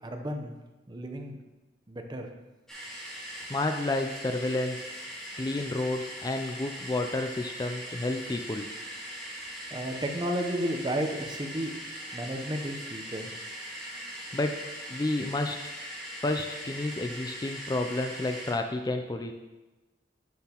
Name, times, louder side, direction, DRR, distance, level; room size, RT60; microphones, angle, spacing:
voice 1, 0.0-0.5 0.9-1.4 1.9-2.3 9.7-11.7 12.1-13.3, right 1 dB, 25° right, 4 dB, 0.7 m, -32 dB
sound 1, 2.7-18.5, equal, 5° left, 1.8 m, -41 dB
voice 2, 3.4-4.9 5.4-8.7 14.3-14.6 14.9-15.6 16.2-19.3, left 2 dB, 20° left, 6 dB, 0.4 m, -30 dB
11.0 x 5.8 x 2.9 m, 1.1 s
head